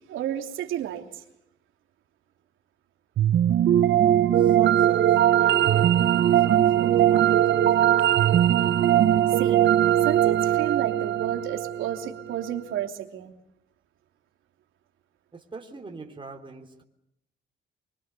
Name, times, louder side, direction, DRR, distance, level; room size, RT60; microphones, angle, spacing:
voice 1, 0.1-1.2 9.3-9.7 10.0-13.4, right 10 dB, 85° right, 5 dB, 3.2 m, -31 dB
sound 1, 3.2-12.3, right 11 dB, 65° right, 1.1 m, -20 dB
voice 2, 4.4-8.1 15.3-16.8, right 4 dB, 25° right, 2 dB, 3.5 m, -41 dB
26.0 x 24.0 x 6.9 m, 0.80 s
cardioid pair, 90°, 20 cm